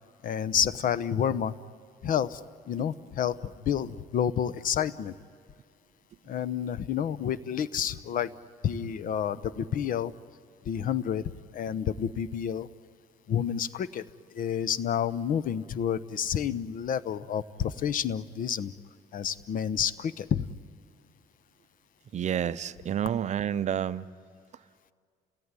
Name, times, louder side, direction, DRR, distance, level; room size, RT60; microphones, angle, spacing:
voice 1, 0.2-1.6 2.0-2.4 2.7-5.1 6.3-8.3 8.6-10.1 10.6-12.7 13.3-14.0 14.3-18.7 19.1-20.5, left 8 dB, 55° left, 16 dB, 0.9 m, -29 dB
voice 2, 22.1-24.1, right 9 dB, 45° right, 15 dB, 0.7 m, -29 dB
30.0 x 18.0 x 9.8 m, 2.2 s
cardioid pair, 110°, 17 cm